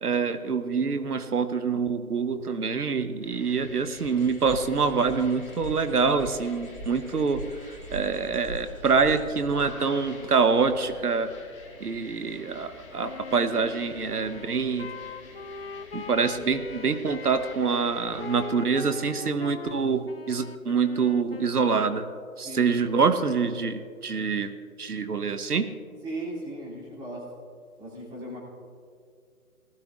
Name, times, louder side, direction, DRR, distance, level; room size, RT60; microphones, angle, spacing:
voice 1, 0.0-11.3 11.8-14.9 15.9-22.1 22.4-24.5 24.8-25.7, right 5 dB, 85° right, 10 dB, 1.0 m, -26 dB
sound 1, 3.2-18.5, left 3 dB, 20° left, 1.3 m, -49 dB
sound 2, 4.0-9.6, equal, 30° right, 1.3 m, -42 dB
Wind instrument woodwind instrument, 13.0-22.0, left 5 dB, 45° left, 0.4 m, -41 dB
voice 2, 22.4-22.8 26.0-27.3 27.8-28.4, right 1 dB, 10° right, -7 dB, 2.8 m, -37 dB
20.0 x 13.5 x 2.5 m, 2.2 s
figure-of-eight pair, 150°, 44 cm